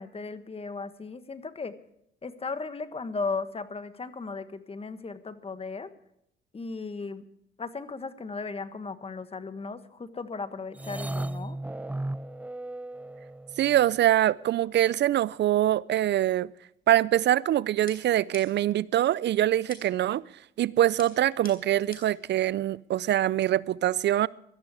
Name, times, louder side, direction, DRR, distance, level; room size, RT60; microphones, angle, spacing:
voice 1, 0.0-1.7 2.2-5.9 6.5-7.2 7.6-11.6, left 4 dB, 30° left, 1.4 m, -36 dB
sound 1, 10.7-13.8, right 1 dB, 5° right, 0.5 m, -35 dB
voice 2, 13.6-16.5 16.9-20.2 20.6-24.3, right 12 dB, 60° right, 0.5 m, -24 dB
sound 2, 17.9-18.8 19.7-20.1 21.0-22.3, left 4 dB, 45° left, 4.0 m, -48 dB
17.0 x 13.0 x 4.8 m
cardioid pair, 90°, 20 cm